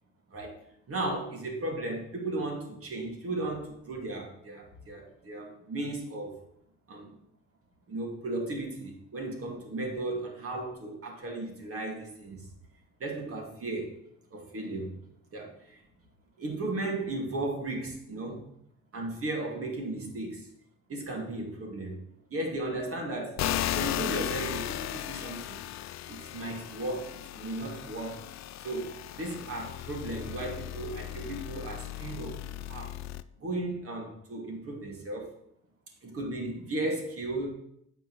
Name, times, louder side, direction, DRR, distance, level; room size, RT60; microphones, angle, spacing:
voice 1, 0.9-6.4 6.9-7.1 7.9-12.5 13.0-14.0 14.3-14.9 15.3-15.8 16.4-18.4 18.9-20.5 20.9-22.0 22.3-25.6 26.1-28.2 28.6-32.9 33.4-35.3 36.0-37.5, right 2 dB, 50° right, 1 dB, 2.4 m, -35 dB
sound 1, 23.4-33.2, left 13 dB, 65° left, 0.4 m, -36 dB
7.5 x 5.2 x 6.2 m, 0.74 s
cardioid pair, 90°, 30 cm